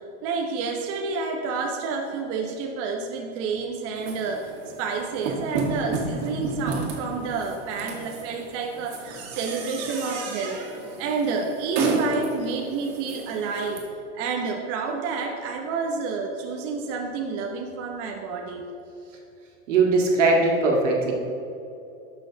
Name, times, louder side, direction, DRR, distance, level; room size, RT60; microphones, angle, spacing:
voice 1, 0.2-4.5 4.8-10.6 11.0-13.8 14.1-18.6, right 4 dB, 40° right, 2 dB, 1.0 m, -29 dB
sound 1, 4.0-13.8, right 3 dB, 60° right, 2.2 m, -32 dB
voice 2, 19.7-21.1, right 3 dB, 90° right, 0 dB, 2.1 m, -20 dB
11.5 x 6.4 x 4.0 m, 2.7 s
supercardioid pair, 135°, 36 cm